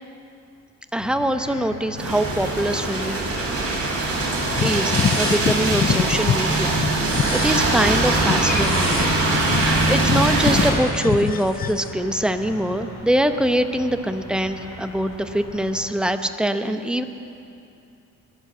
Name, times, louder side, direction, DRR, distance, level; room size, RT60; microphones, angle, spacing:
voice 1, 0.9-3.2 4.6-9.1 9.9-17.0, right 1 dB, 5° right, 7 dB, 0.9 m, -23 dB
sound 1, 1.0-15.9, left 2 dB, 60° left, 3.8 m, -39 dB
sound 2, 2.0-10.7, right 2 dB, 50° right, 3.9 m, -22 dB
sound 3, 4.5-6.4 6.7-11.9, left 8 dB, 30° left, 0.4 m, -25 dB
22.0 x 7.8 x 6.8 m, 2.7 s
cardioid pair, 90°, 30 cm